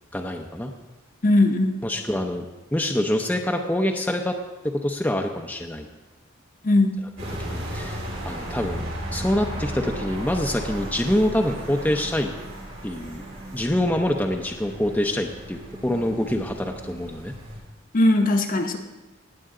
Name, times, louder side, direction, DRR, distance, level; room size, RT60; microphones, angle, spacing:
voice 1, 0.1-0.7 1.8-2.4 2.7-4.3 4.6-5.9 7.5-8.0 8.2-12.3 12.8-13.2 13.5-17.3, left 1 dB, 10° left, 2 dB, 0.6 m, -25 dB
voice 2, 1.2-1.7 6.6-6.9 17.9-18.8, left 2 dB, 45° left, 4 dB, 0.9 m, -19 dB
sound 1, 7.2-17.6, equal, 90° right, 4.2 m, -35 dB
18.5 x 7.8 x 3.8 m, 1.1 s
head